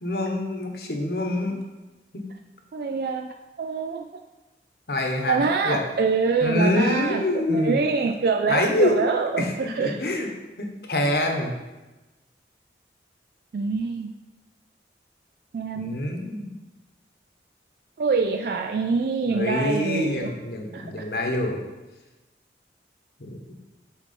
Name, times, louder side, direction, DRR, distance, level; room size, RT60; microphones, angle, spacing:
voice 1, 0.0-1.6 2.1-2.2 4.9-5.8 6.4-7.8 8.5-9.0 9.4-9.5 9.8-10.3 10.6-11.5 15.7-16.5 19.3-21.6 23.2-23.4, left 1 dB, 60° left, 2 dB, 1.0 m, -25 dB
voice 2, 2.7-3.3 3.6-4.0 5.3-10.0 13.5-14.1 15.5-16.0 18.0-20.3 20.7-20.9, right 4 dB, 60° right, 4 dB, 0.3 m, -25 dB
6.4 x 4.7 x 4.2 m, 1.1 s
head